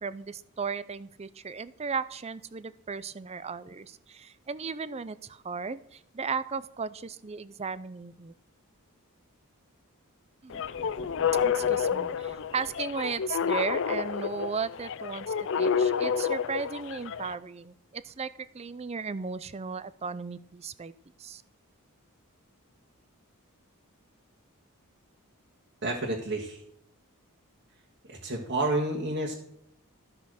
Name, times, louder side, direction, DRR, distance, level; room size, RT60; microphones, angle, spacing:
voice 1, 0.0-8.3 10.4-10.6 11.4-15.3 15.6-20.9 21.2-21.4, right 5 dB, 30° right, 16 dB, 0.5 m, -36 dB
sound 1, 10.5-17.4, left 7 dB, 55° left, 0.5 m, -29 dB
sound 2, 10.5-14.3, left 1 dB, 20° left, 1.5 m, -49 dB
voice 2, 25.8-26.6 28.0-29.3, right 2 dB, 50° right, -3 dB, 1.8 m, -30 dB
13.5 x 5.9 x 6.4 m, 0.76 s
head